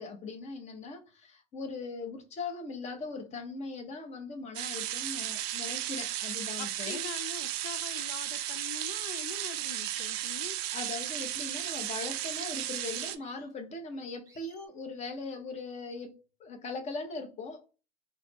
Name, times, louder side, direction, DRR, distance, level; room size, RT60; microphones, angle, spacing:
voice 1, 0.0-7.0 10.7-17.7, left 3 dB, 20° left, 0.7 m, -40 dB
sound 1, 4.5-13.1, right 13 dB, 40° right, 0.4 m, -35 dB
voice 2, 6.6-10.6, left 10 dB, 70° left, 0.5 m, -43 dB
sound 2, 9.7-10.3 11.6-12.0 13.2-13.4 14.2-14.7, right 3 dB, 10° right, 1.0 m, -50 dB
3.9 x 2.1 x 2.8 m
hypercardioid pair, 110°, 32 cm